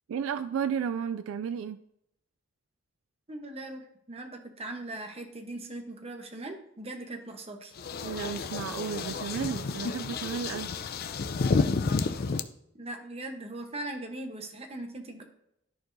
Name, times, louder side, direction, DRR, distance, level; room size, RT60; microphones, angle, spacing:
voice 1, 0.1-1.8 8.0-10.7, right 7 dB, 75° right, 12 dB, 0.3 m, -33 dB
voice 2, 3.3-7.7 12.8-15.2, right 2 dB, 30° right, 5 dB, 1.0 m, -40 dB
sound 1, 7.8-12.4, left 4 dB, 50° left, 0.4 m, -30 dB
13.0 x 4.5 x 2.6 m, 0.79 s
head